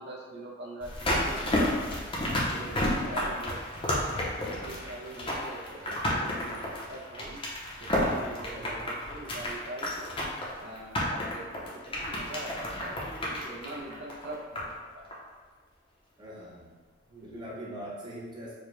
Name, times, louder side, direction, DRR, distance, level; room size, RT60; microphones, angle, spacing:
voice 1, 0.0-1.6 2.5-3.5 3.8-7.4 7.8-10.1 10.6-15.3 17.1-17.5, right 1 dB, 55° right, -2 dB, 0.7 m, -43 dB
sound 1, 0.8-14.8 15.1-15.2, left 1 dB, 25° left, 0.7 m, -31 dB
voice 2, 3.0-3.4 8.5-8.9 16.2-16.8 17.2-18.5, equal, 20° right, -5 dB, 0.9 m, -42 dB
4.8 x 2.3 x 3.2 m, 1.5 s
head